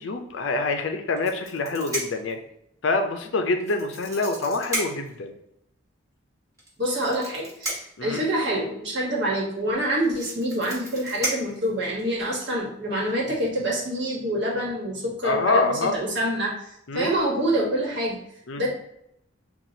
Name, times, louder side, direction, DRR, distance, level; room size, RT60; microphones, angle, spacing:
voice 1, 0.0-2.4 2.8-5.3 8.0-8.2 15.2-16.0 16.9-17.1 18.5-18.6, left 3 dB, 65° left, 6 dB, 0.5 m, -26 dB
sound 1, 1.2-2.3 3.6-5.1 6.6-8.1 9.5-9.6 9.8-12.2 13.1-13.3 13.7-13.9, right 2 dB, 15° right, 1.1 m, -33 dB
voice 2, 6.8-18.2 18.6-18.7, right 1 dB, 55° right, -3 dB, 1.2 m, -26 dB
5.8 x 2.3 x 2.7 m, 0.78 s
head